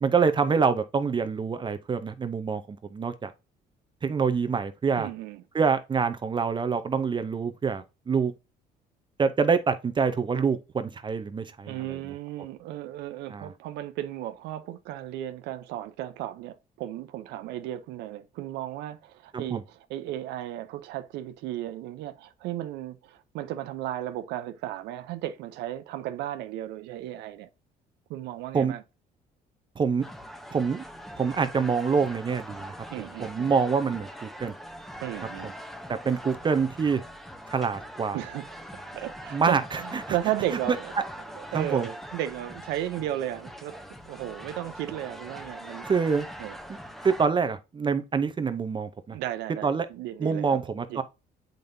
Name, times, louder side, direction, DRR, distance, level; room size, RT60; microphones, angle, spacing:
voice 1, 0.0-3.3 4.0-5.1 5.5-8.3 9.2-11.8 13.3-13.5 19.3-19.6 28.5-28.7 29.8-30.0 30.5-30.8 31.2-32.7 33.2-34.5 35.9-37.0 37.5-38.2 39.3-39.8 40.7-40.8 41.5-41.9 45.9-46.3 47.0-49.2 49.6-49.9 50.2-51.0, right 5 dB, 30° right, 0.7 m, -26 dB
voice 2, 5.0-5.4 11.7-27.5 28.1-28.8 32.9-33.5 35.0-35.5 38.1-38.6 38.9-40.9 41.3-45.9 46.4-46.6 49.1-50.6 50.9-51.0, right 13 dB, 90° right, 0.7 m, -35 dB
sound 1, 30.0-47.3, equal, ahead, 0.8 m, -42 dB
7.7 x 5.2 x 2.7 m
cardioid pair, 110°, 17 cm